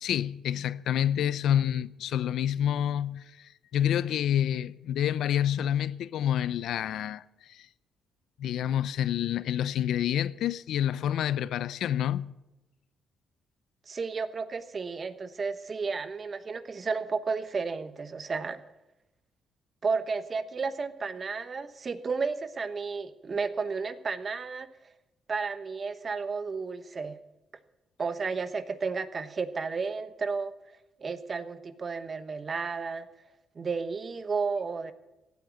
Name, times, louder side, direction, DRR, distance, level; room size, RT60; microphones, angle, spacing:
voice 1, 0.0-7.2 7.5-7.7 8.4-12.3, left 10 dB, 75° left, 0.6 m, -28 dB
voice 2, 13.9-18.6 19.8-24.7 25.3-27.2 28.0-30.5 31.0-33.1 33.6-34.9, right 4 dB, 40° right, 1.1 m, -32 dB
16.5 x 8.7 x 8.3 m
cardioid pair, 90°, 0 cm